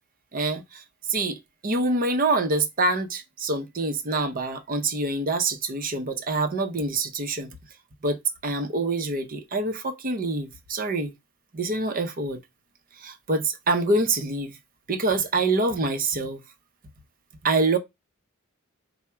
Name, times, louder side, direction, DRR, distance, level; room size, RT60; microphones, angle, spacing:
voice 1, 0.3-0.6 1.1-1.4 1.6-7.5 8.0-11.1 11.5-12.4 13.0-14.5 14.9-16.4 17.4-17.8, right 2 dB, 40° right, 0.7 m, -25 dB
4.7 x 2.1 x 4.3 m
head